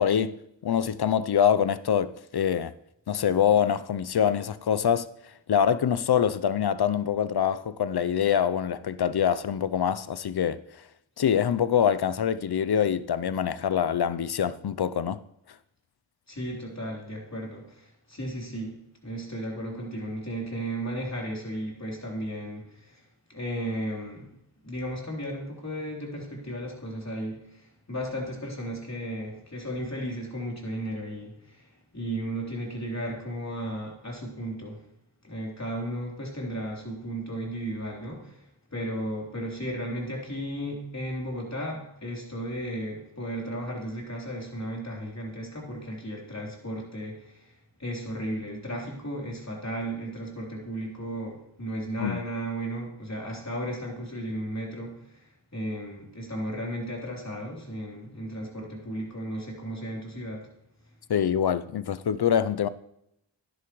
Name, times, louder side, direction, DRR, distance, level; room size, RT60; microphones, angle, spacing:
voice 1, 0.0-2.7 3.1-5.1 5.5-10.6 11.2-15.2 52.0-52.2 61.1-62.7, left 8 dB, 55° left, 0.6 m, -25 dB
voice 2, 16.3-18.8 19.0-23.0 23.3-24.3 24.6-31.7 31.9-34.8 35.2-38.4 38.7-47.5 47.8-55.0 55.5-60.4, right 1 dB, 35° left, 3.6 m, -34 dB
13.5 x 10.5 x 3.1 m
cardioid pair, 40°, 48 cm